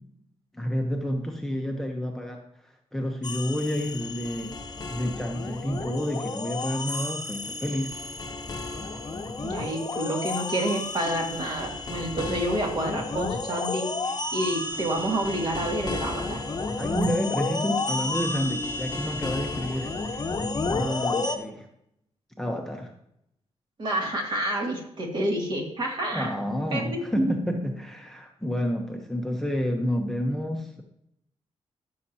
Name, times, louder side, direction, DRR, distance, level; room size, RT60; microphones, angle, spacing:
voice 1, 0.5-4.6 4.9-8.0 16.8-20.3 20.6-21.7 22.4-22.9 26.1-30.8, equal, 5° left, 2 dB, 1.0 m, -29 dB
sound 1, 3.2-21.4, left 3 dB, 35° left, 1.0 m, -32 dB
voice 2, 9.4-13.9 14.3-16.4 23.8-26.3 26.7-27.3, right 1 dB, 45° right, 0 dB, 2.4 m, -28 dB
14.5 x 6.6 x 2.9 m, 0.77 s
wide cardioid pair, 135°, 11 cm